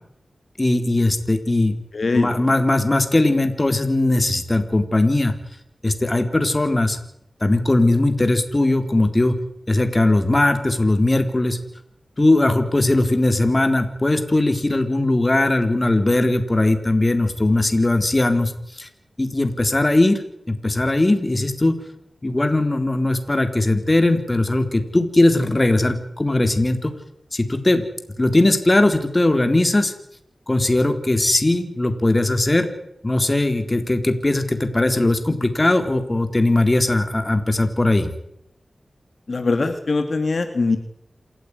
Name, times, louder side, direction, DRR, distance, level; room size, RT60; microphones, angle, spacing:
voice 1, 0.6-1.8 2.1-5.3 5.8-7.0 7.4-9.4 9.7-11.6 12.2-18.9 19.2-20.2 20.5-21.8 22.2-27.0 27.3-27.8 28.2-29.9 30.5-32.7 33.0-38.1, left 2 dB, 30° left, 7 dB, 3.8 m, -19 dB
voice 2, 1.9-2.3 39.3-40.8, left 3 dB, 65° left, 7 dB, 2.5 m, -21 dB
28.0 x 15.0 x 9.8 m, 0.75 s
wide cardioid pair, 60°, 0 cm